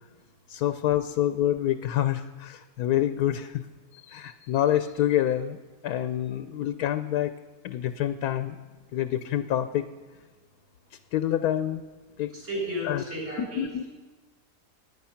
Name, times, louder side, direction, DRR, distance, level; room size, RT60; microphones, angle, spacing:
voice 1, 0.5-3.7 3.9-7.3 7.6-8.6 8.9-9.8 11.1-11.8 12.2-12.3 12.8-13.8, left 12 dB, 80° left, 10 dB, 1.1 m, -27 dB
voice 2, 12.5-13.9, equal, 45° right, -3 dB, 7.2 m, -33 dB
25.0 x 9.6 x 5.8 m, 1.3 s
omnidirectional pair, 1.6 m